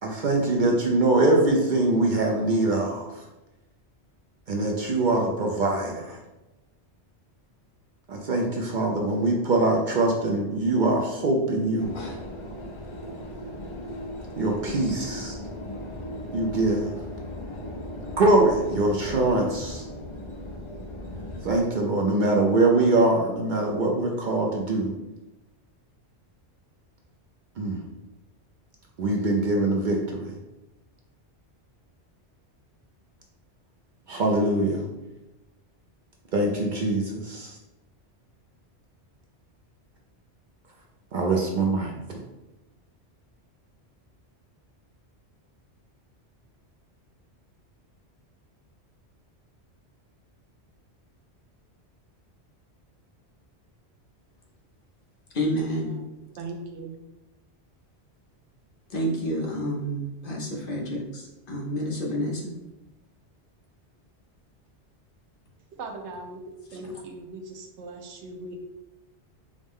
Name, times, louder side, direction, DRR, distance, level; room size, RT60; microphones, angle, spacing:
voice 1, 0.0-3.2 4.5-6.2 8.1-11.9 14.4-15.4 16.3-16.9 18.2-19.8 21.4-24.9 27.6-27.8 29.0-30.3 34.1-34.9 36.3-37.5 41.1-41.9, right 2 dB, 60° right, 0 dB, 0.6 m, -23 dB
sound 1, 11.8-21.6, left 1 dB, 40° left, 0.5 m, -37 dB
voice 2, 55.3-56.0 58.9-62.5, equal, 55° left, -1 dB, 0.9 m, -29 dB
voice 3, 56.4-57.0 65.7-66.4 66.7-68.6, right 2 dB, 85° right, 3 dB, 1.0 m, -39 dB
4.9 x 2.1 x 3.5 m, 1.0 s
omnidirectional pair, 1.1 m